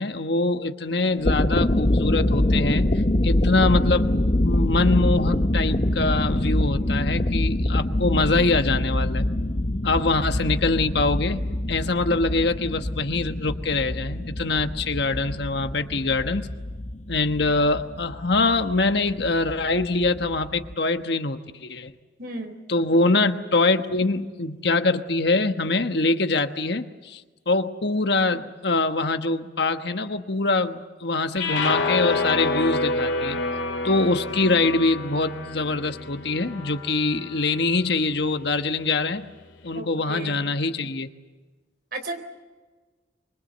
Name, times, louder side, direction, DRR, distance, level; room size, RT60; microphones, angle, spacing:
voice 1, 0.0-2.9 3.2-4.1 4.4-9.2 9.8-16.5 17.1-21.9 22.7-27.2 27.5-33.4 33.8-39.3 39.6-41.1, left 3 dB, 60° left, 8 dB, 1.3 m, -24 dB
sound 1, 1.1-20.7, left 1 dB, 40° left, 1.0 m, -25 dB
voice 2, 22.2-22.6 39.7-40.5 41.9-42.2, right 1 dB, 50° right, 5 dB, 4.1 m, -34 dB
sound 2, 31.4-37.6, left 3 dB, 75° left, 2.7 m, -28 dB
25.0 x 23.0 x 7.9 m, 1.3 s
head